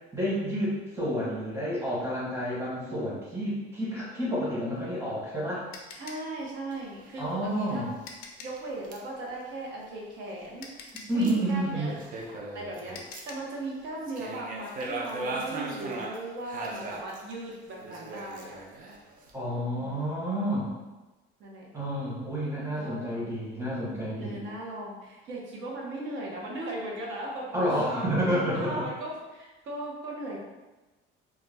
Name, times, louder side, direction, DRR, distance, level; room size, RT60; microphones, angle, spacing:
voice 1, 0.1-5.6 7.2-7.9 11.1-11.9 19.3-20.7 21.7-24.4 27.5-28.8, equal, 10° right, -7 dB, 0.8 m, -30 dB
sound 1, 4.8-8.7 10.1-10.2 10.6-13.6, left 4 dB, 85° left, 0.4 m, -47 dB
voice 2, 5.9-7.8 8.4-10.7 11.1-11.9 12.5-18.6 19.7-20.0 21.4-21.7 22.8-23.2 24.2-30.4, right 1 dB, 60° right, -3 dB, 0.7 m, -38 dB
sound 2, 6.7-7.1 7.5-7.6 7.9-8.0 8.6-8.7 8.9-9.0 10.9-13.5 14.0-17.3 17.8-19.3, right 2 dB, 40° right, 0.4 m, -38 dB
2.3 x 2.1 x 3.2 m, 1.1 s
cardioid pair, 155°, 21 cm